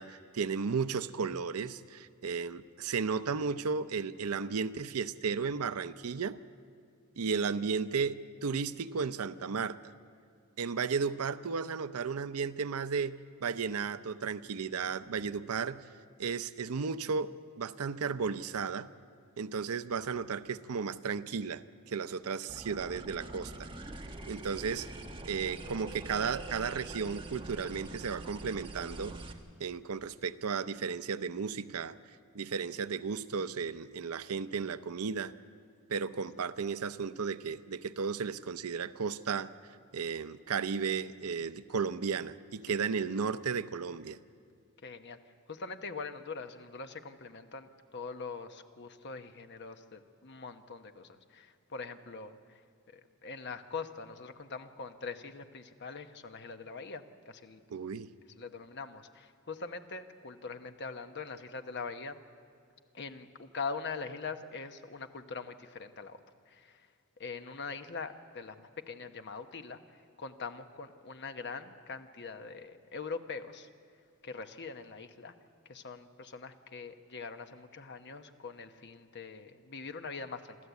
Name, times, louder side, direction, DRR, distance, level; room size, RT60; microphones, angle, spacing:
voice 1, 0.0-6.4 7.2-9.8 10.6-15.8 16.2-18.9 19.4-23.7 24.3-24.9 25.2-29.2 29.6-32.0 32.3-35.3 35.9-39.5 39.9-44.2 57.7-58.1, right 5 dB, 90° right, 14 dB, 0.6 m, -34 dB
sound 1, 22.5-29.3, right 2 dB, 25° right, 1.3 m, -44 dB
voice 2, 44.8-45.2 45.5-52.6 52.9-57.6 58.4-62.2 62.9-66.9 67.2-73.7 74.2-75.3 75.7-80.6, left 4 dB, 50° left, 8 dB, 1.1 m, -43 dB
27.5 x 13.0 x 8.2 m, 2.3 s
head